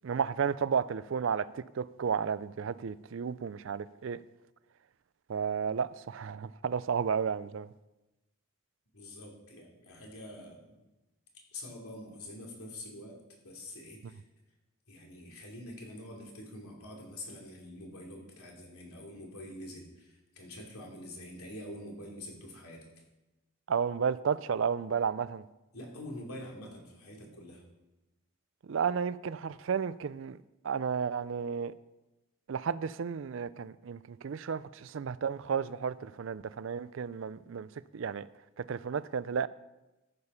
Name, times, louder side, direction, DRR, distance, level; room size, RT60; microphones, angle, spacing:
voice 1, 0.0-4.2 5.3-7.7 23.7-25.4 28.6-30.4 30.6-31.7 32.5-37.7 37.9-38.3 38.6-39.5, right 6 dB, 60° right, 0.4 m, -32 dB
voice 2, 8.9-10.8 11.5-13.2 13.4-14.2 14.9-22.9 25.7-27.6, left 1 dB, 85° left, 2.9 m, -46 dB
14.0 x 6.9 x 5.6 m
head